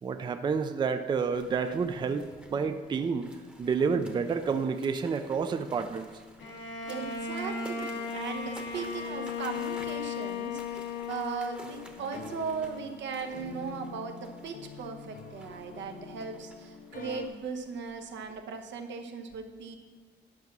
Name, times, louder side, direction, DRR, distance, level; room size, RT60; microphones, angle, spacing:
voice 1, 0.0-3.3 3.6-6.1, right 5 dB, 25° right, 8 dB, 0.4 m, -29 dB
sound 1, 1.3-18.3, right 1 dB, 5° right, 0.9 m, -53 dB
Bowed string instrument, 6.4-12.1, left 5 dB, 85° left, 1.8 m, -36 dB
voice 2, 6.9-19.8, right 5 dB, 85° right, 5 dB, 1.0 m, -38 dB
sound 2, 12.0-17.3, left 6 dB, 50° left, 0.6 m, -46 dB
11.0 x 6.1 x 6.0 m, 1.4 s
wide cardioid pair, 175°, 18 cm